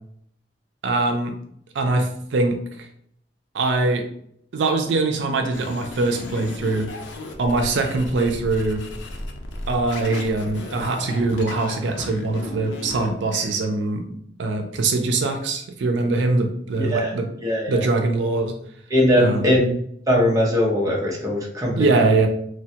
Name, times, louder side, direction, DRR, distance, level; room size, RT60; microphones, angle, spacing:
voice 1, 0.8-1.3 1.7-2.9 3.5-4.0 4.5-6.9 7.4-8.8 9.7-17.3 17.7-18.5 19.2-19.6 21.8-22.3, right 3 dB, 90° right, 5 dB, 0.4 m, -22 dB
sound 1, 5.5-13.6, left 1 dB, 90° left, 0.5 m, -35 dB
voice 2, 16.8-17.1 17.4-17.8 18.9-19.7 20.1-21.9, left 1 dB, 20° right, -2 dB, 0.7 m, -20 dB
3.1 x 2.2 x 2.7 m, 0.67 s
head